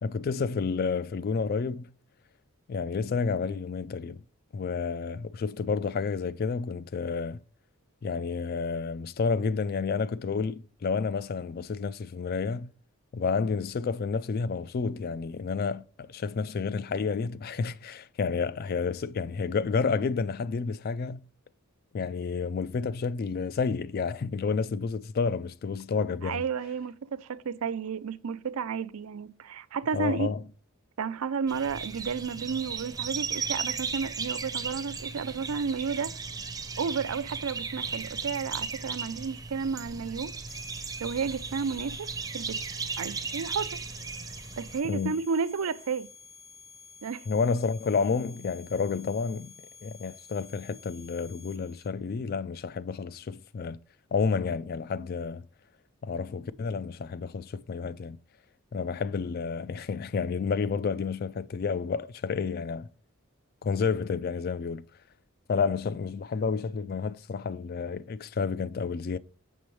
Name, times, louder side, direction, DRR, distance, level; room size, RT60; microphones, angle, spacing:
voice 1, 0.0-1.9 2.7-4.2 4.5-7.4 8.0-12.7 13.1-21.2 21.9-26.4 29.9-30.4 44.8-45.2 47.3-49.5 49.8-53.8 54.1-55.4 56.0-58.2 58.7-62.9 63.6-64.8 65.5-69.2, left 5 dB, 45° left, 0.3 m, -30 dB
voice 2, 26.2-30.3 31.0-36.1 36.8-40.3 41.0-42.6 43.0-43.8 44.6-46.1 47.0-47.2, right 5 dB, 75° right, 0.5 m, -32 dB
sound 1, 31.5-44.8, right 5 dB, 15° right, 0.6 m, -36 dB
sound 2, 40.5-51.9, left 5 dB, 65° left, 1.2 m, -51 dB
7.1 x 6.1 x 3.2 m
head